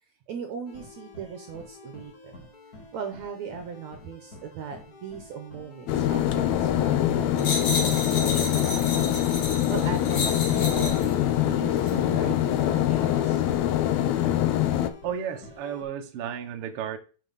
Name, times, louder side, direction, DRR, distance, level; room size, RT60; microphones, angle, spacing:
voice 1, 0.3-2.5 2.9-9.2 9.7-13.4, right 7 dB, 70° right, 1.7 m, -38 dB
sound 1, 0.7-15.8, left 2 dB, 35° left, 1.7 m, -48 dB
sound 2, 5.9-14.9, left 12 dB, 90° left, 1.6 m, -24 dB
sound 3, 7.4-11.1 11.8-12.0, left 3 dB, 55° left, 3.3 m, -31 dB
voice 2, 15.0-17.0, right 8 dB, 90° right, 1.2 m, -33 dB
7.2 x 6.0 x 4.0 m
omnidirectional pair, 4.2 m